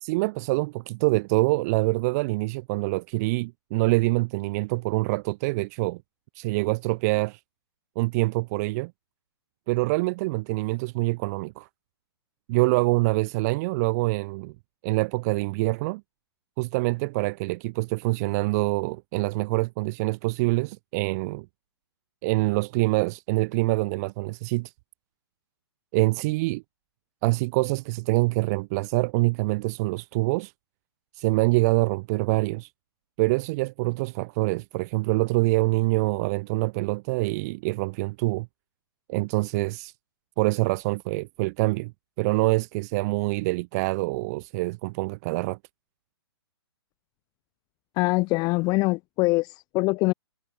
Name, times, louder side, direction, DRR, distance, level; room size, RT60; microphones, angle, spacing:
voice 1, 0.0-6.0 6.3-7.4 8.0-8.9 9.7-11.7 12.5-14.5 14.8-16.0 16.6-21.5 22.2-24.7 25.9-26.6 27.2-30.5 31.2-32.7 33.2-38.5 39.1-39.9 40.4-41.9 42.2-45.6, right 24 dB, 35° right, 2.4 m, -25 dB
voice 2, 48.0-50.1, left 24 dB, 30° left, 2.2 m, -23 dB
hypercardioid pair, 140°, 14 cm